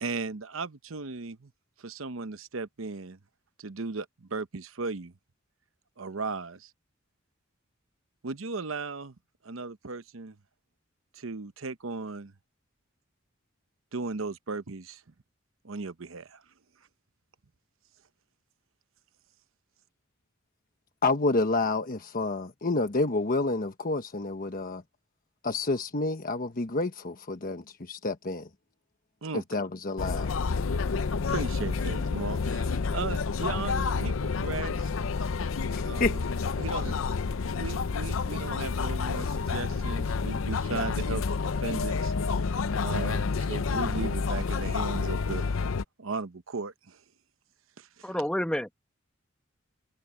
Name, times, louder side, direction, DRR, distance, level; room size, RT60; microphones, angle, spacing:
voice 1, 0.0-1.5 1.8-3.2 3.6-5.1 6.0-6.7 8.2-9.1 9.4-10.4 11.1-12.3 13.9-15.0 15.6-16.4 29.2-29.4 31.3-34.9 35.8-36.2 36.6-37.0 37.6-42.1 42.8-45.5 46.0-47.0 47.8-48.1, right 4 dB, 85° right, 0.9 m, -36 dB
voice 2, 21.0-24.8 25.4-28.5 29.3-30.4 35.7-36.2, left 3 dB, 45° left, 1.2 m, -29 dB
sound 1, 30.0-45.8, left 4 dB, 80° left, 0.6 m, -29 dB
voice 3, 48.0-48.8, equal, 5° left, 1.2 m, -29 dB
head